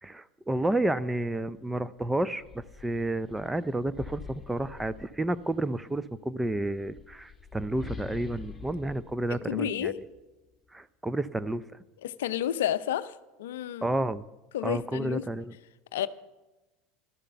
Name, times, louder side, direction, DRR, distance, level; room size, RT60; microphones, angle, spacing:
voice 1, 0.0-9.9 10.7-11.6 13.8-14.3 14.6-15.5, right 1 dB, 10° right, 14 dB, 0.6 m, -31 dB
sound 1, 1.4-1.6 2.0-5.6 6.6-10.2, left 6 dB, 15° left, 1.7 m, -45 dB
voice 2, 9.5-10.0 12.0-13.9 14.5-15.2 15.9-16.1, left 11 dB, 70° left, 14 dB, 0.5 m, -31 dB
14.0 x 12.5 x 5.6 m, 1.1 s
hypercardioid pair, 80°, 0 cm